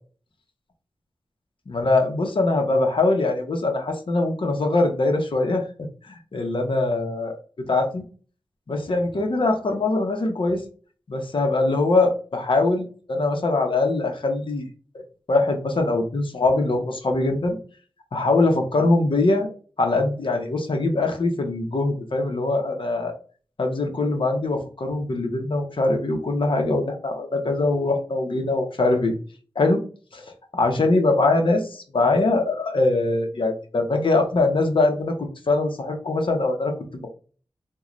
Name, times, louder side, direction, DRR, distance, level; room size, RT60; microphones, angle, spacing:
voice 1, 1.7-7.3 7.6-8.0 8.7-10.6 11.1-14.7 15.3-17.6 18.1-19.5 19.8-23.1 23.6-29.1 29.6-29.8 30.1-30.2 30.5-37.1, left 2 dB, 65° left, 3 dB, 0.8 m, -22 dB
3.7 x 2.2 x 3.0 m, 0.39 s
cardioid pair, 55°, 9 cm